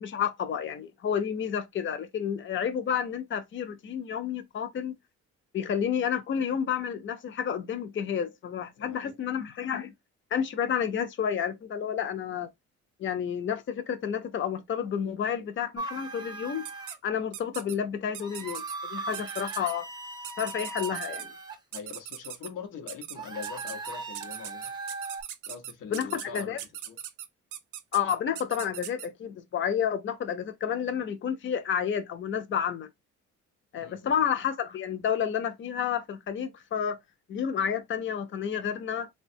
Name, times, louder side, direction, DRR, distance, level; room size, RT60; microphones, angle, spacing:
voice 1, 0.0-5.0 5.5-9.9 10.3-12.5 13.0-16.6 17.0-18.6 18.9-19.9 20.4-21.3 25.9-26.6 27.9-32.9 33.7-37.0 37.3-39.1, left 8 dB, 40° left, 0.5 m, -30 dB
voice 2, 8.8-9.1 21.7-24.7 25.5-26.6 26.9-27.0 33.8-34.1, left 7 dB, 90° left, 0.8 m, -42 dB
sound 1, 15.8-17.0 18.2-21.6 23.2-25.2, right 3 dB, 15° right, 0.6 m, -38 dB
sound 2, 16.6-17.0 17.3-17.8 18.1-18.7 19.1-19.7 20.2-21.3 21.7-22.5 22.9-23.2 23.4-29.1, right 11 dB, 85° right, 0.5 m, -40 dB
3.3 x 2.2 x 2.6 m
cardioid pair, 90°, 30 cm